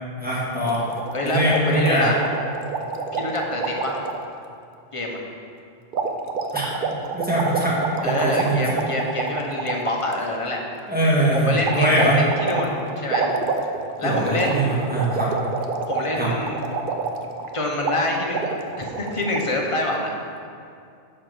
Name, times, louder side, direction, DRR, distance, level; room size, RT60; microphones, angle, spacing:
voice 1, 0.2-0.8 1.2-2.1 6.5-6.7 7.1-8.8 10.9-12.2 14.0-15.3 16.2-16.3, right 1 dB, 5° right, -7 dB, 1.9 m, -22 dB
sound 1, 0.7-4.3 5.9-10.2 11.7-17.6 17.8-18.0 18.3-19.4, right 4 dB, 50° right, 0.8 m, -28 dB
voice 2, 1.1-2.2 3.1-4.0 4.9-5.2 8.0-10.6 11.3-13.3 14.0-14.6 15.9-16.6 17.5-20.1, left 1 dB, 25° left, -1 dB, 1.2 m, -26 dB
10.0 x 4.6 x 6.9 m, 2.4 s
omnidirectional pair, 1.2 m